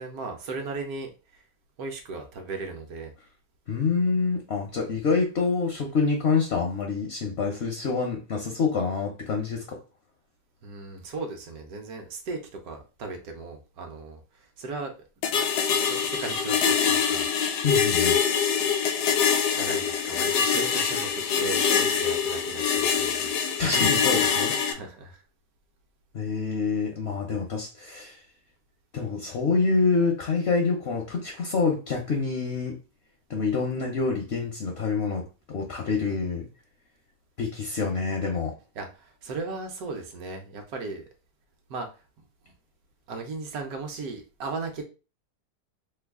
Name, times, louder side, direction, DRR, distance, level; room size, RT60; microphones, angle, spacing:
voice 1, 0.0-1.4 1.8-3.1 10.6-14.9 15.9-17.2 19.5-23.3 24.7-25.2 38.7-41.0 41.7-41.9 42.4-42.5 43.1-44.8, right 3 dB, 65° right, 3 dB, 1.1 m, -36 dB
voice 2, 3.7-9.6 17.6-18.2 23.6-24.5 26.1-28.2 28.9-32.8 33.3-35.3 35.5-36.5 37.4-38.5, left 4 dB, 60° left, 2 dB, 0.7 m, -26 dB
sound 1, 15.2-24.7, left 7 dB, 80° left, 1.1 m, -24 dB
3.0 x 2.3 x 3.5 m, 0.32 s
omnidirectional pair, 1.8 m